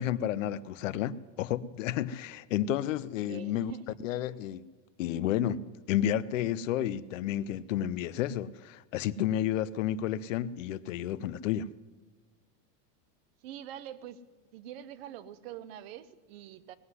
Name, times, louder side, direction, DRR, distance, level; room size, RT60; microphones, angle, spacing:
voice 1, 0.0-3.7 4.0-4.7 5.0-5.6 5.9-11.7, left 11 dB, 50° left, 0.5 m, -31 dB
voice 2, 3.3-4.0 13.4-14.2 14.5-16.8, right 10 dB, 40° right, 0.6 m, -45 dB
19.0 x 7.8 x 9.6 m
supercardioid pair, 170°, 49 cm